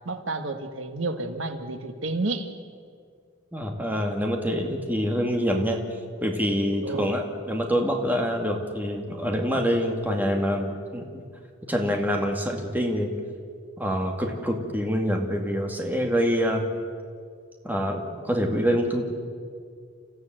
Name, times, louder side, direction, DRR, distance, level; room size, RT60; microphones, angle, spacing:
voice 1, 0.0-2.5 6.8-7.1, right 2 dB, 85° right, 8 dB, 1.5 m, -30 dB
voice 2, 3.5-5.8 6.2-11.2 11.7-13.1 13.8-16.6 17.6-19.1, equal, 10° right, 2 dB, 2.3 m, -26 dB
30.0 x 15.0 x 7.8 m, 2.1 s
head